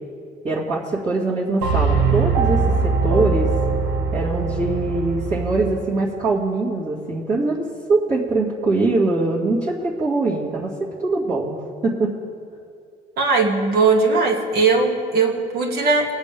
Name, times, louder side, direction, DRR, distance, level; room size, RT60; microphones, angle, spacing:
voice 1, 0.4-3.5 4.1-7.6 7.9-10.7 11.0-11.6 11.8-12.1, right 3 dB, 45° right, -7 dB, 2.4 m, -22 dB
sound 1, 1.6-5.8, right 4 dB, 90° right, 1.9 m, -21 dB
voice 2, 13.2-16.0, right 4 dB, 65° right, 0 dB, 2.3 m, -19 dB
21.0 x 8.1 x 3.6 m, 2.5 s
cardioid pair, 110°, 17 cm